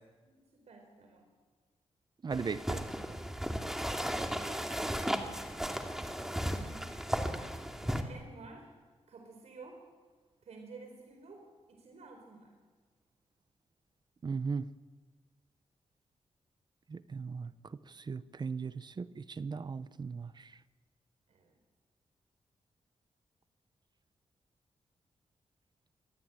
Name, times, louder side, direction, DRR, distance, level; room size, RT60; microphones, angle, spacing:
voice 1, 0.2-1.3 4.3-4.8 5.4-6.8 7.8-8.7 9.1-9.8 10.4-11.4 11.7-12.5 21.3-21.5, right 3 dB, 80° right, 4.7 m, -52 dB
voice 2, 2.2-2.8 14.2-14.7 16.9-17.5 17.9-20.5, right 5 dB, 40° right, 0.8 m, -37 dB
sound 1, 2.3-8.0, equal, 5° right, 2.5 m, -35 dB
27.0 x 24.0 x 9.0 m
wide cardioid pair, 120°, 11 cm